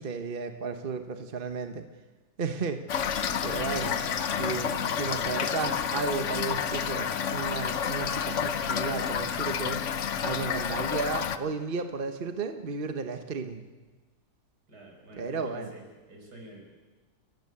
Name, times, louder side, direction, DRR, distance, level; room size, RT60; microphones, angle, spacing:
voice 1, 0.0-1.8 2.4-2.8 3.4-3.9 4.4-9.8 10.2-13.7 15.1-15.7, right 5 dB, 35° right, 7 dB, 1.2 m, -33 dB
Toilet flush / Fill (with liquid), 2.9-11.4, left 7 dB, 55° left, 1.1 m, -30 dB
voice 2, 3.7-4.2 14.7-15.8 16.1-16.7, right 1 dB, 80° right, 1 dB, 5.8 m, -47 dB
29.5 x 14.5 x 8.6 m, 1.3 s
omnidirectional pair, 1.7 m